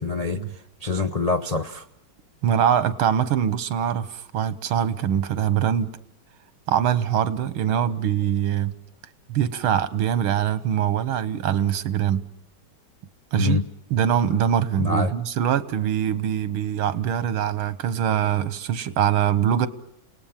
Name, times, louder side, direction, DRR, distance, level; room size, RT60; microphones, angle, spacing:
voice 1, 0.0-1.9 13.3-13.7 14.8-15.1, left 4 dB, 85° left, 5 dB, 0.3 m, -25 dB
voice 2, 2.4-5.9 6.7-8.7 9.3-12.2 13.3-13.6 13.9-19.7, right 9 dB, 85° right, 15 dB, 2.0 m, -23 dB
29.5 x 18.5 x 7.3 m, 0.78 s
omnidirectional pair, 2.3 m